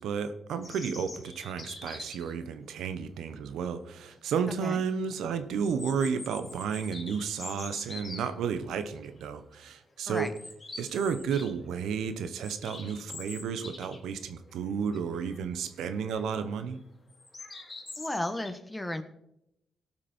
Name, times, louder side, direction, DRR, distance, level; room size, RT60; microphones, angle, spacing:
voice 1, 0.0-10.3 10.8-16.8, right 6 dB, 85° right, 10 dB, 0.9 m, -32 dB
sound 1, 0.6-2.3 3.9-4.0 4.4-4.5 5.6-8.3 9.0-9.2 9.5-9.7 10.1-11.5 11.8-14.1 14.4-14.5 14.9-15.4 15.9-16.3 17.1-18.5, left 3 dB, 35° left, 2.5 m, -44 dB
voice 2, 4.5-4.8 10.1-10.3 18.0-19.0, left 1 dB, 15° left, 8 dB, 1.3 m, -34 dB
17.0 x 5.9 x 4.4 m, 0.81 s
cardioid pair, 65°, 0 cm